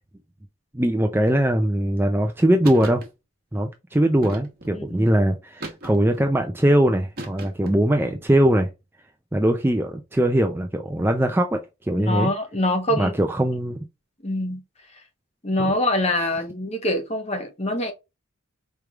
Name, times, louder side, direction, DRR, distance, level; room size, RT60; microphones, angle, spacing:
voice 1, 0.7-3.0 3.5-8.7 9.3-12.3 13.0-13.8, right 1 dB, 10° right, 0.4 m, -21 dB
sound 1, 2.6-3.1 4.2-4.8 5.6-6.2 7.2-7.8, right 2 dB, 45° right, 1.2 m, -36 dB
voice 2, 4.7-5.1 12.0-13.1 14.2-14.6 15.4-17.9, left 1 dB, 30° left, 1.1 m, -24 dB
4.6 x 3.3 x 2.4 m
head